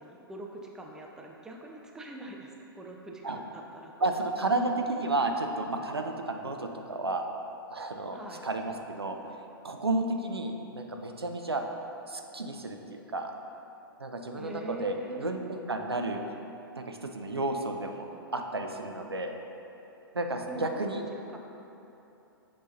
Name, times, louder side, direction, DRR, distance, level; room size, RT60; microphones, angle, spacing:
voice 1, 0.0-3.9 8.1-8.4 14.4-15.5 20.5-21.0 21.3-21.4, right 1 dB, 5° right, 0 dB, 0.4 m, -43 dB
voice 2, 4.0-7.2 7.7-8.2 8.4-9.2 9.6-11.6 12.1-13.3 14.0-16.2 16.8-18.1 18.3-19.4 20.1-21.0, right 2 dB, 80° right, 4 dB, 0.6 m, -32 dB
8.4 x 5.5 x 2.7 m, 3.0 s
figure-of-eight pair, 110°, 13 cm